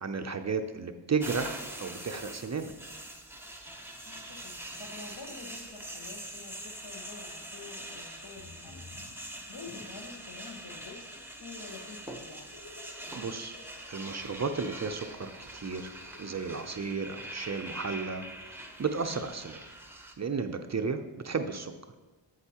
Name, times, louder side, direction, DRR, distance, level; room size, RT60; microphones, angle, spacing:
voice 1, 0.0-2.7 13.1-13.6 13.9-15.9 16.2-19.6 20.2-21.7, right 5 dB, 40° right, 7 dB, 0.5 m, -33 dB
sound 1, 1.2-20.1, right 1 dB, 5° right, 0.7 m, -44 dB
voice 2, 4.0-8.9 9.2-12.5, left 4 dB, 65° left, 2 dB, 1.2 m, -48 dB
sound 2, 8.3-10.2 10.6-19.7, left 3 dB, 35° left, 1.2 m, -56 dB
8.1 x 7.8 x 2.9 m, 1.2 s
wide cardioid pair, 90°, 45 cm